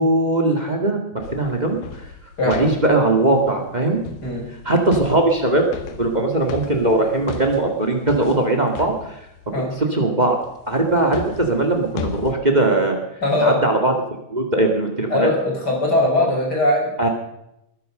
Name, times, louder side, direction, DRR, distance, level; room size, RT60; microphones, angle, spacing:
voice 1, 0.0-1.8 2.4-4.0 4.6-5.6 6.0-9.2 9.8-10.4 10.7-13.0 13.4-13.9 14.3-15.3 17.0-17.1, right 2 dB, 65° right, 4 dB, 0.4 m, -19 dB
sound 1, 1.2-9.9 10.4-12.3, left 7 dB, 75° left, 3.5 m, -37 dB
voice 2, 2.4-2.7 4.2-4.5 9.5-9.7 13.2-13.6 15.1-16.9, left 1 dB, 25° left, -1 dB, 5.3 m, -20 dB
21.0 x 10.5 x 6.6 m, 0.83 s
omnidirectional pair, 4.7 m